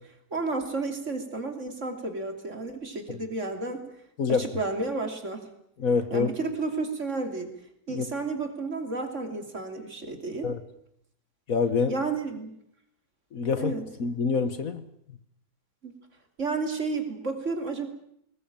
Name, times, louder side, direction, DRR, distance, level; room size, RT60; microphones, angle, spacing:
voice 1, 0.3-3.9 4.3-5.4 6.1-7.5 7.9-10.5 11.9-12.5 13.6-13.8 15.8-16.0 16.4-17.9, right 3 dB, 45° right, 5 dB, 3.3 m, -31 dB
voice 2, 5.8-6.3 7.9-8.1 10.4-10.6 11.5-11.9 13.3-13.7 14.0-14.8, left 5 dB, 60° left, 11 dB, 1.7 m, -26 dB
20.5 x 20.5 x 8.8 m, 0.72 s
omnidirectional pair, 1.7 m